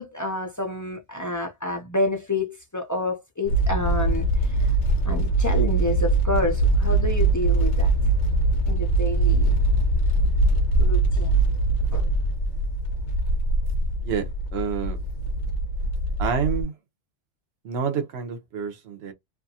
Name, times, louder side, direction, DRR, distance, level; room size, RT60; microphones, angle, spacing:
voice 1, 0.0-4.7 5.0-7.9 8.7-9.6 10.8-11.4 11.9-12.1, left 2 dB, 30° left, 0.3 m, -29 dB
sound 1, 3.5-16.6, right 2 dB, 85° left, 1.0 m, -22 dB
voice 2, 14.5-15.0 16.2-16.7 17.6-19.1, right 7 dB, 70° right, 1.0 m, -28 dB
2.7 x 2.4 x 2.7 m
omnidirectional pair, 1.2 m